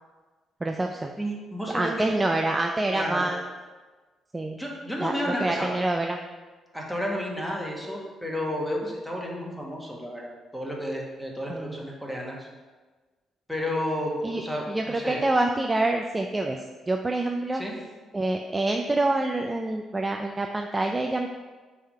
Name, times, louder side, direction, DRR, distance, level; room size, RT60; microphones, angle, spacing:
voice 1, 0.6-1.1 1.7-3.4 4.3-4.6 5.0-6.2 11.5-11.9 14.2-14.4 14.7-17.6 18.1-21.3, right 2 dB, 20° right, 3 dB, 0.4 m, -26 dB
voice 2, 1.2-2.1 2.9-3.3 4.5-5.7 6.7-12.5 13.5-15.2 17.5-17.7, equal, ahead, -2 dB, 1.4 m, -31 dB
5.7 x 3.5 x 5.4 m, 1.3 s
cardioid pair, 90°, 0 cm